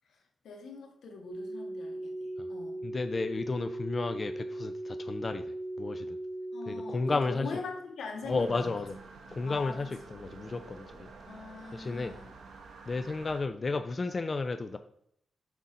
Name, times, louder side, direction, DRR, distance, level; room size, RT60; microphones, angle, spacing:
voice 1, 0.4-2.1 2.5-2.8 6.5-8.7 9.5-9.9 11.3-12.3, left 4 dB, 85° left, 2 dB, 1.5 m, -41 dB
sound 1, 1.3-7.2, right 1 dB, 40° right, 0.6 m, -38 dB
voice 2, 2.8-6.2 6.7-7.5 8.2-9.0 9.3-11.1 11.7-12.2 12.9-14.8, left 3 dB, 25° left, 9 dB, 0.3 m, -33 dB
sound 2, 8.3-13.4, right 4 dB, 75° right, 0.9 m, -50 dB
6.1 x 4.2 x 5.2 m, 0.70 s
wide cardioid pair, 175°, 0 cm